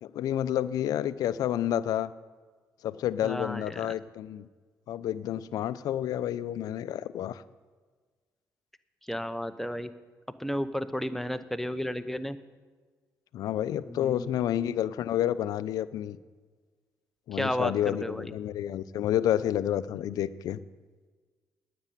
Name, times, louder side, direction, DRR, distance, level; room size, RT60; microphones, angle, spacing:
voice 1, 0.0-2.1 2.8-4.5 4.9-7.4 13.3-16.2 17.3-20.6, left 11 dB, 75° left, 15 dB, 0.5 m, -29 dB
voice 2, 3.2-3.9 9.1-9.9 10.4-12.4 13.9-14.3 17.3-18.3, equal, 5° left, 10 dB, 0.8 m, -33 dB
9.7 x 7.6 x 9.2 m, 1.4 s
supercardioid pair, 75°, 6 cm